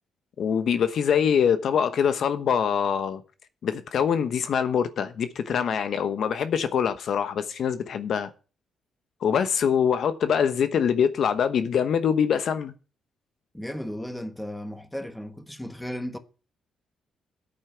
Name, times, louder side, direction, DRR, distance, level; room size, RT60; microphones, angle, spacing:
voice 1, 0.4-3.2 3.6-8.3 9.2-12.7, left 7 dB, 60° left, 1.0 m, -24 dB
voice 2, 13.5-16.2, equal, 5° left, 1.3 m, -35 dB
8.7 x 7.9 x 5.9 m
cardioid pair, 90°, 0 cm